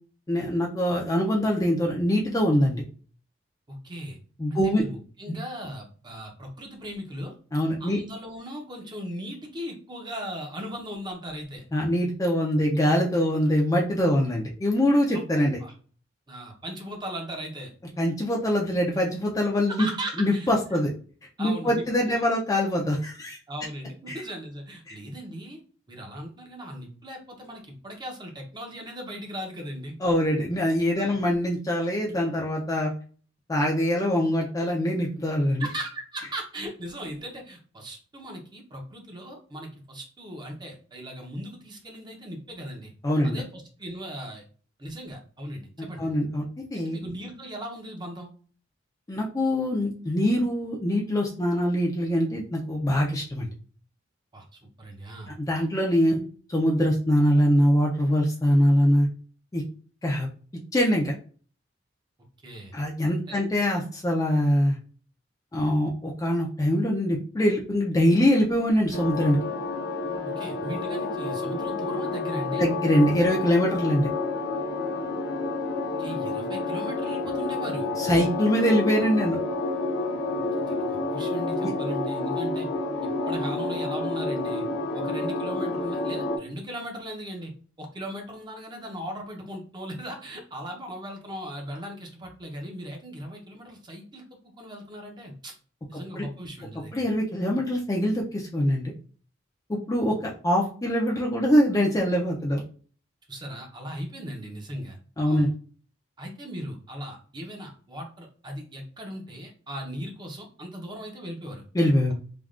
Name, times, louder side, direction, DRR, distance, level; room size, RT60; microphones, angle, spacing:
voice 1, 0.3-2.8 4.4-4.8 5.3-5.4 7.5-8.0 11.7-15.6 18.0-19.9 20.2-20.9 21.4-23.4 24.1-24.2 24.9-25.0 30.0-32.9 33.5-35.6 43.0-43.4 46.0-46.5 46.7-47.0 49.1-53.5 55.3-56.2 56.5-59.1 59.5-59.6 60.0-60.3 60.7-61.1 62.7-64.8 65.5-69.4 72.6-74.1 78.0-79.4 81.6-81.7 96.1-96.2 96.9-98.9 99.7-102.6 105.2-105.5 111.7-112.1, equal, 20° left, -1 dB, 0.4 m, -23 dB
voice 2, 3.7-4.2 4.5-7.3 7.8-11.6 15.1-15.2 15.6-15.7 16.3-17.7 19.7-20.5 21.4-22.2 23.5-25.6 25.9-29.9 30.9-31.2 35.6-42.9 43.2-44.4 44.8-46.1 46.7-48.3 54.3-54.4 54.8-55.3 62.4-62.7 63.3-63.4 70.4-72.7 76.0-77.9 80.3-80.4 80.7-82.7 83.0-84.7 84.9-87.5 87.8-94.2 94.6-95.5 95.9-96.9 103.3-105.0 105.2-105.5 106.2-111.6, equal, 25° right, 2 dB, 0.6 m, -38 dB
sound 1, 68.9-86.4, left 2 dB, 65° left, 0.6 m, -29 dB
3.4 x 2.2 x 2.4 m, 0.41 s
head